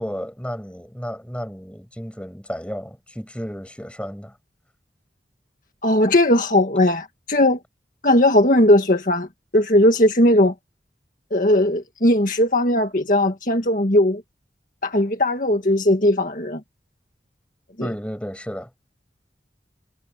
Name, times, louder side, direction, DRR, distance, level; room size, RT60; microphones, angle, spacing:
voice 1, 0.0-4.4 17.8-18.7, equal, 5° left, 7.5 m, -32 dB
voice 2, 5.8-7.6 8.0-9.3 9.5-10.5 11.3-14.2 14.8-16.6 17.8-17.9, left 1 dB, 50° left, 1.9 m, -18 dB
head